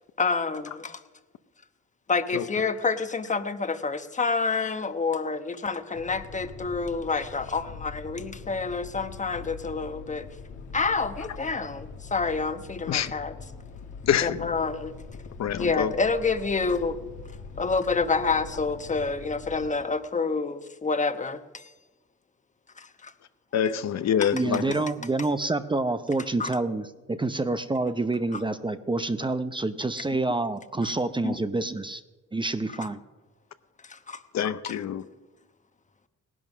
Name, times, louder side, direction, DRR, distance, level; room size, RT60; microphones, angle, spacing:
voice 1, 0.2-1.0 2.1-10.3 10.7-13.3 14.2-14.9 15.5-17.0 17.6-21.7 22.8-23.1 26.4-26.5 30.8-30.9 31.2-31.4 33.8-34.2 34.7-34.8, left 4 dB, 25° left, 10 dB, 1.1 m, -28 dB
sound 1, 5.9-19.6, left 4 dB, 75° left, 1.8 m, -43 dB
voice 2, 14.0-14.5 15.4-15.9 23.5-24.7 34.3-35.0, left 9 dB, 60° left, 12 dB, 0.8 m, -26 dB
voice 3, 24.3-32.0 32.3-33.0, right 2 dB, 15° right, 11 dB, 0.7 m, -27 dB
18.0 x 11.0 x 6.1 m, 1.2 s
cardioid pair, 90°, 30 cm